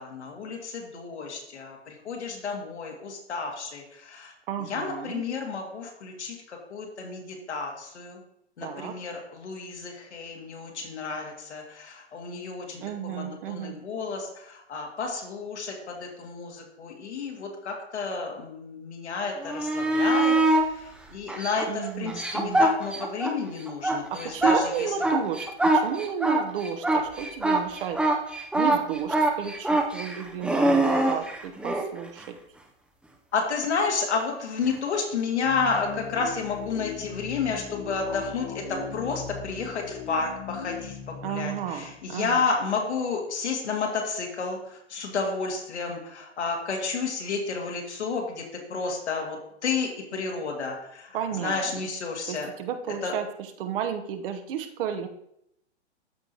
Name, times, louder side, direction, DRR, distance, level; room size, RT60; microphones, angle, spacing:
voice 1, 0.0-4.3 4.7-8.2 8.6-20.3 21.1-24.9 30.9-31.2 33.3-40.9 41.2-44.6 44.9-48.4 48.7-51.1 51.4-52.5 53.0-53.1, left 4 dB, 75° left, 0 dB, 2.2 m, -31 dB
voice 2, 4.5-5.2 8.6-8.9 12.8-13.8 21.7-22.7 24.1-28.0 28.5-32.4 41.2-42.4 51.1-51.9 52.3-55.1, right 8 dB, 50° right, 6 dB, 1.0 m, -33 dB
sound 1, 19.4-20.7 21.3-23.3 23.7-31.9 34.6-34.7, right 2 dB, 5° right, 0.6 m, -23 dB
sound 2, 35.4-42.6, left 7 dB, 55° left, 1.1 m, -39 dB
13.5 x 5.1 x 2.9 m, 0.76 s
hypercardioid pair, 110°, 34 cm